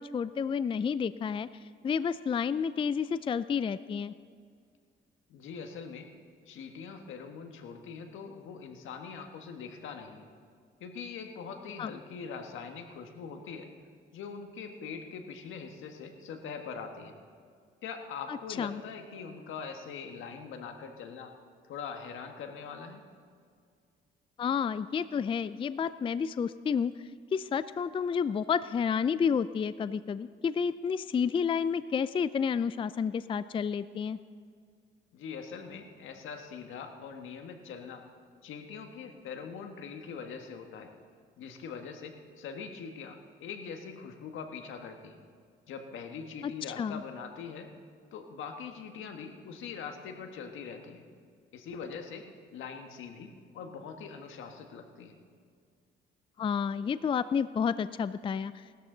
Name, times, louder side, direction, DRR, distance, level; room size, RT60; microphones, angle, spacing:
voice 1, 0.0-1.5 1.8-4.1 11.8-11.9 18.3-18.8 24.4-26.9 27.3-34.2 46.4-46.5 46.8-47.0 56.4-58.6, left 6 dB, 25° left, 15 dB, 0.3 m, -30 dB
voice 2, 5.3-6.1 6.5-10.3 10.8-13.7 14.1-17.2 17.8-21.3 21.6-23.0 35.1-38.0 38.4-40.9 41.4-45.2 45.7-47.7 48.1-51.0 51.5-52.3 52.5-55.2, left 6 dB, 80° left, 5 dB, 1.5 m, -42 dB
18.5 x 13.0 x 3.9 m, 2.1 s
cardioid pair, 90°, 20 cm